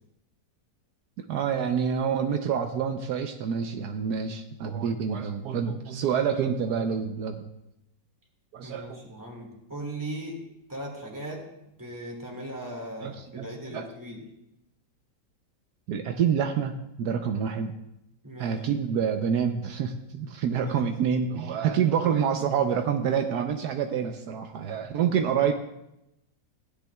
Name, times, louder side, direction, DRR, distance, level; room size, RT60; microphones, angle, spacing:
voice 1, 1.2-7.5 8.5-9.0 13.0-13.9 15.9-17.7 18.4-25.5, right 7 dB, 75° right, 5 dB, 1.2 m, -27 dB
voice 2, 8.6-11.5 11.8-14.2 18.2-18.6 20.7-20.9, right 1 dB, 10° right, -1 dB, 2.0 m, -38 dB
16.0 x 10.0 x 2.3 m, 0.87 s
omnidirectional pair, 1.8 m